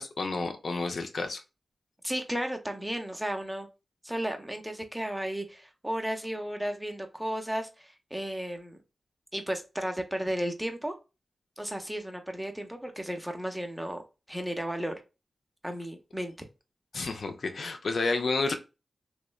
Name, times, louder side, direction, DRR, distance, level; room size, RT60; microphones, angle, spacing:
voice 1, 0.0-1.4 16.9-18.5, left 3 dB, 75° left, 0.4 m, -30 dB
voice 2, 2.0-3.7 4.0-8.8 9.3-10.9 11.6-14.0 14.3-15.0 15.6-16.3, equal, 5° right, 0.6 m, -34 dB
3.0 x 2.0 x 2.2 m
cardioid pair, 55°, 0 cm